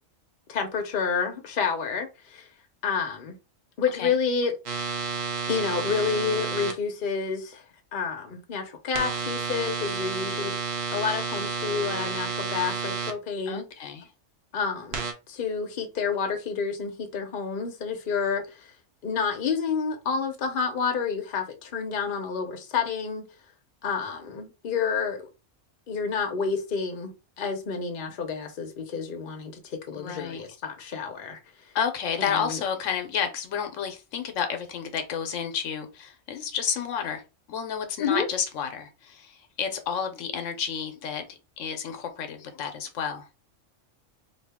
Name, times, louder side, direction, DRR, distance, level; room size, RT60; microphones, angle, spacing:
voice 1, 0.5-2.5 2.8-3.4 3.8-4.5 5.5-7.6 7.9-10.5 10.9-13.7 14.5-18.7 19.0-23.2 23.8-25.3 25.9-31.4 32.2-32.6 38.0-38.3, left 5 dB, 50° left, 0.8 m, -29 dB
sound 1, 4.7-6.7 8.9-13.1 14.9-15.1, right 5 dB, 60° right, 0.9 m, -31 dB
voice 2, 13.5-14.1 29.9-30.4 31.7-37.2 37.5-41.2 41.6-43.2, left 7 dB, 80° left, 1.0 m, -31 dB
2.8 x 2.7 x 3.5 m
omnidirectional pair, 1.3 m